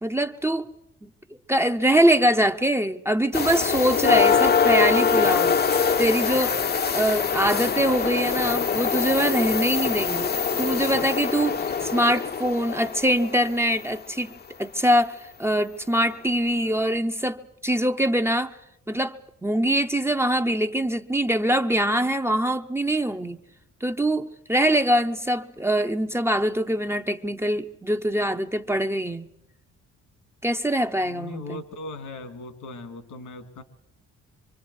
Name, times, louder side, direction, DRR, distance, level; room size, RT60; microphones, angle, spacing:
voice 1, 0.0-0.7 1.0-1.1 1.5-6.6 6.9-10.3 10.6-14.3 14.6-18.5 18.9-19.2 19.4-23.4 23.8-29.3 30.4-31.6, right 1 dB, 10° right, 7 dB, 0.7 m, -23 dB
sound 1, 3.3-14.0 16.0-16.1 16.6-16.8, left 6 dB, 35° left, 0.7 m, -24 dB
voice 2, 31.0-33.6, left 2 dB, 80° left, 9 dB, 2.4 m, -38 dB
25.5 x 25.0 x 4.7 m, 0.82 s
cardioid pair, 90°, 30 cm